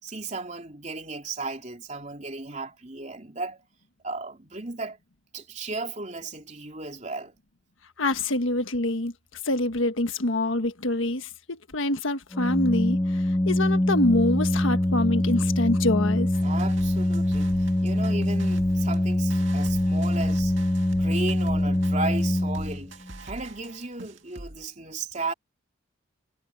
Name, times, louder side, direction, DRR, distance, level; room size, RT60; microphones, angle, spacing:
voice 1, 0.0-3.6 4.0-5.0 5.3-7.3 16.4-20.5 21.0-25.3, right 3 dB, 35° right, 3.2 m, -35 dB
voice 2, 8.0-9.1 9.4-16.3, left 2 dB, 75° left, 1.4 m, -26 dB
Organ, 12.3-23.1, left 1 dB, 15° left, 0.5 m, -24 dB
sound 1, 16.3-24.7, right 2 dB, 65° right, 2.2 m, -44 dB
head